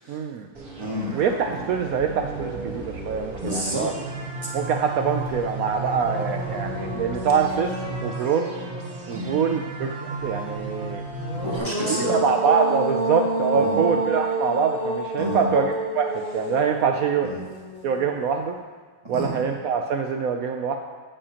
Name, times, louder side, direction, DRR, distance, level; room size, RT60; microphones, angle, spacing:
voice 1, 0.1-0.5 1.1-3.9 4.5-7.7 8.0-8.5 9.1-11.0 12.1-17.3 17.8-18.6 19.1-20.8, right 6 dB, 75° right, 4 dB, 0.8 m, -24 dB
sound 1, 0.6-11.6, right 2 dB, 55° right, 1.8 m, -34 dB
voice 2, 0.8-1.1 3.4-3.9 9.1-9.4 11.4-12.1 13.5-13.8 15.2-15.5 17.2-17.4 19.0-19.3, equal, 15° right, -4 dB, 1.5 m, -29 dB
sound 2, 5.3-5.4 5.7-9.4 11.1-18.3, right 2 dB, 25° left, 2.3 m, -30 dB
9.9 x 8.8 x 2.9 m, 1.5 s
omnidirectional pair, 1.9 m